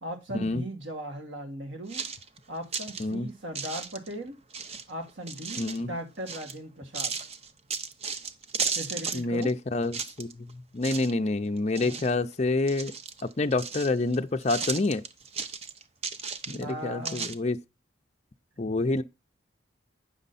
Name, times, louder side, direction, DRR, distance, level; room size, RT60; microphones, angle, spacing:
voice 1, 0.0-2.0 2.5-4.3 4.9-7.1 8.7-9.5 11.7-12.0 16.5-17.3, right 1 dB, 85° right, 2.5 m, -38 dB
sound 1, 1.9-3.1 3.6-4.2 4.5-5.8 6.3-6.6 6.9-9.5 9.8-10.5 10.8-11.3 11.6-12.3 12.7-14.2 14.4-16.7 17.1-17.4, right 5 dB, 30° right, 0.7 m, -34 dB
voice 2, 5.6-5.9 9.1-10.5 10.7-12.9 13.4-15.0 16.5-17.6 18.6-19.0, left 2 dB, 35° left, 0.5 m, -27 dB
9.0 x 6.5 x 4.1 m
head